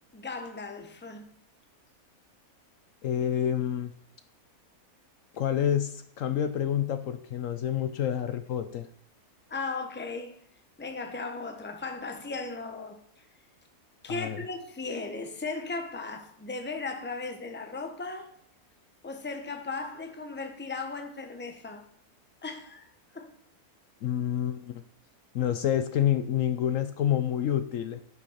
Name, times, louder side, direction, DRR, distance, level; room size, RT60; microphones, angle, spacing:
voice 1, 0.1-1.3 9.5-10.4 10.8-13.0 14.0-18.3 19.0-21.8 22.4-23.3, left 3 dB, 10° left, 0.9 m, -37 dB
voice 2, 3.0-3.9 5.3-8.9 14.1-14.4 24.0-24.8 25.3-28.0, left 10 dB, 65° left, 1.0 m, -28 dB
11.0 x 5.8 x 5.6 m
omnidirectional pair, 1.6 m